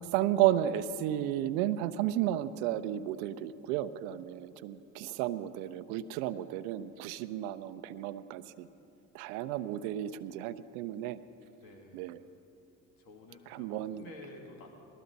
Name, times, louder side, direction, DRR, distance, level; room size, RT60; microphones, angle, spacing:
voice 1, 0.0-8.7 9.1-11.2 11.9-12.2 13.5-14.0, right 12 dB, 75° right, 14 dB, 0.7 m, -33 dB
voice 2, 11.6-12.1 13.0-14.8, left 2 dB, 55° left, 1 dB, 2.4 m, -52 dB
19.5 x 13.5 x 4.0 m, 2.9 s
hypercardioid pair, 70°, 43 cm